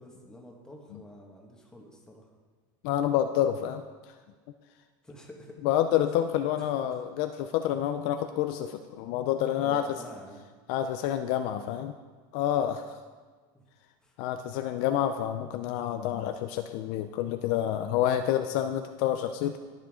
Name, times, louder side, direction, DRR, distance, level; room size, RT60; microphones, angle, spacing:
voice 1, 0.0-2.3 5.0-5.6 6.0-6.1 6.6-7.0 9.6-10.4 13.5-13.6 14.0-14.2, left 1 dB, 5° left, -1 dB, 1.8 m, -49 dB
voice 2, 2.8-3.8 5.6-9.8 10.7-11.9 12.3-13.0 14.2-19.6, left 11 dB, 60° left, 8 dB, 0.6 m, -28 dB
20.5 x 7.4 x 3.8 m, 1.4 s
supercardioid pair, 155°, 11 cm